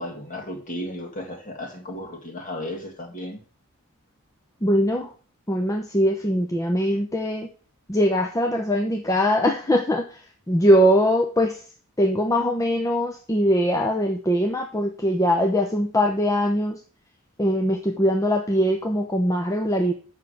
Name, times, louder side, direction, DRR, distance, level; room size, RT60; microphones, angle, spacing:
voice 1, 0.0-3.4, left 1 dB, 40° left, 2 dB, 2.0 m, -34 dB
voice 2, 4.6-5.1 5.5-7.5 7.9-11.6 12.0-16.8 17.4-19.9, equal, 15° left, 3 dB, 0.7 m, -22 dB
7.4 x 6.0 x 6.4 m, 0.40 s
head